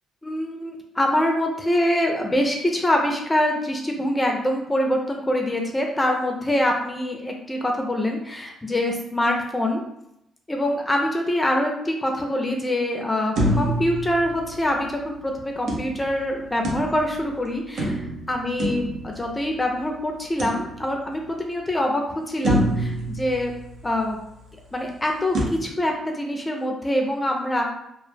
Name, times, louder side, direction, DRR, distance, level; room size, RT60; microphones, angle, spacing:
voice 1, 0.2-9.8 10.5-23.5 23.8-24.2 24.7-27.6, left 1 dB, 15° left, 1 dB, 0.4 m, -24 dB
sound 1, 13.4-15.0 15.7-17.3 17.8-19.7 20.4-21.2 21.7-21.8 22.4-24.1 25.3-25.4, right 1 dB, 70° right, 0.6 m, -27 dB
2.1 x 2.1 x 3.2 m, 0.81 s
cardioid pair, 90°, 0 cm